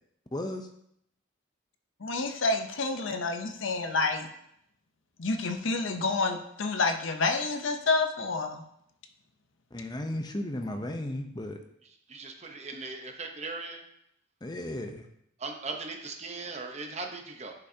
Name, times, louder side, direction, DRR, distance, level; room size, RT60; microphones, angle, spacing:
voice 1, 0.3-0.7 9.7-11.6 14.4-15.0, left 1 dB, 20° left, 5 dB, 0.7 m, -34 dB
voice 2, 2.0-4.3 5.2-8.6, left 3 dB, 65° left, 6 dB, 0.7 m, -28 dB
voice 3, 12.1-13.8 15.4-17.5, right 3 dB, 35° right, 3 dB, 0.8 m, -38 dB
10.0 x 5.5 x 2.8 m, 0.74 s
head